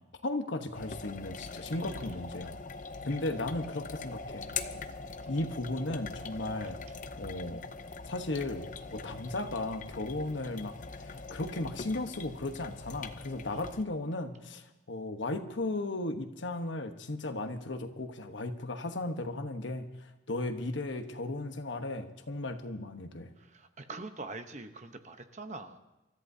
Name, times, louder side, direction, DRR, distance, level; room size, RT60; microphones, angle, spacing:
voice 1, 0.2-2.6 3.0-4.5 5.3-6.8 7.2-7.6 8.1-23.3, left 2 dB, 80° left, 7 dB, 1.1 m, -36 dB
sound 1, 0.7-13.8, left 4 dB, 45° left, 0.6 m, -42 dB
voice 2, 1.7-2.2 4.7-4.8 23.4-25.8, right 3 dB, 40° right, 7 dB, 0.9 m, -44 dB
28.0 x 14.0 x 2.8 m, 1.0 s
head